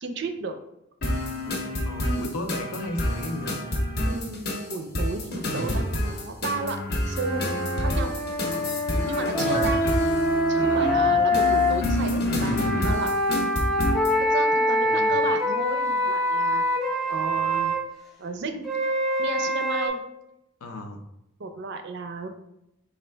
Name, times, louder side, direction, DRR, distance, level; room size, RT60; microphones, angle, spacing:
voice 1, 0.0-0.6 4.0-6.8 7.1-8.1 9.0-9.8 10.5-13.1 14.2-16.6 17.1-17.8 18.2-18.7 19.2-20.0 21.4-22.3, right 3 dB, 50° right, 6 dB, 0.4 m, -33 dB
sound 1, 1.0-14.2, left 1 dB, 45° left, 0.7 m, -28 dB
voice 2, 1.8-3.6 8.5-8.9 10.7-11.2 14.8-15.1 20.6-21.0, left 2 dB, 85° left, 5 dB, 0.6 m, -35 dB
sound 2, 7.2-11.7 12.5-17.8 18.6-19.9, left 1 dB, ahead, 0.5 m, -24 dB
4.3 x 2.4 x 3.3 m, 0.84 s
head